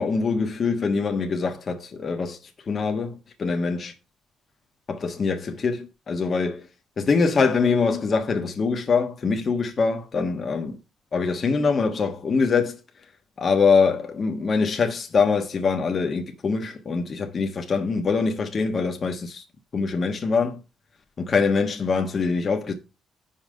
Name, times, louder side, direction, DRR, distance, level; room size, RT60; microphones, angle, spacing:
voice 1, 0.0-2.4 2.7-3.9 4.9-6.6 7.0-10.8 11.1-12.8 13.4-19.4 19.7-20.6 21.2-22.7, left 4 dB, 45° left, 1.3 m, -23 dB
5.7 x 4.9 x 6.6 m
supercardioid pair, 65°, 0 cm